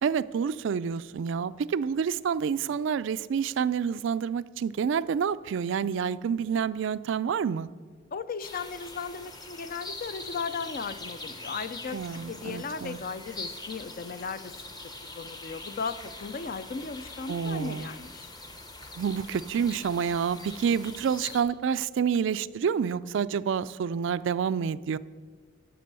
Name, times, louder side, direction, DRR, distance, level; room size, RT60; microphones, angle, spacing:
voice 1, 0.0-7.7 11.9-13.0 17.3-17.9 19.0-25.0, right 7 dB, 65° right, 16 dB, 0.3 m, -28 dB
voice 2, 8.1-12.0 12.3-14.5 15.0-18.3, left 5 dB, 45° left, 13 dB, 0.5 m, -36 dB
sound 1, 8.4-21.4, left 2 dB, 20° left, 0.8 m, -43 dB
12.5 x 6.1 x 6.8 m, 1.5 s
head